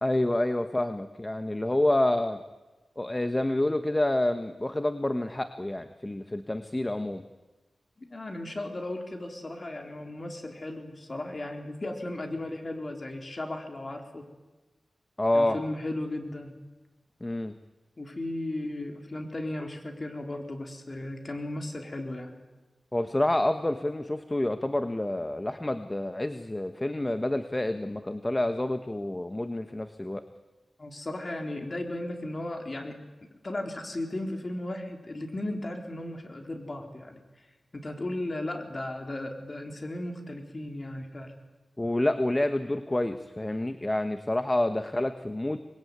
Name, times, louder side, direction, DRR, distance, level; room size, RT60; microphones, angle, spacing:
voice 1, 0.0-2.4 3.0-7.2 15.2-15.6 17.2-17.6 22.9-30.2 41.8-45.6, left 1 dB, 20° left, 9 dB, 1.2 m, -28 dB
voice 2, 8.0-14.2 15.3-16.6 18.0-22.3 30.8-37.2 37.7-41.3, left 1 dB, 35° left, 4 dB, 3.9 m, -36 dB
25.5 x 21.0 x 9.6 m, 1.2 s
wide cardioid pair, 95°, 0 cm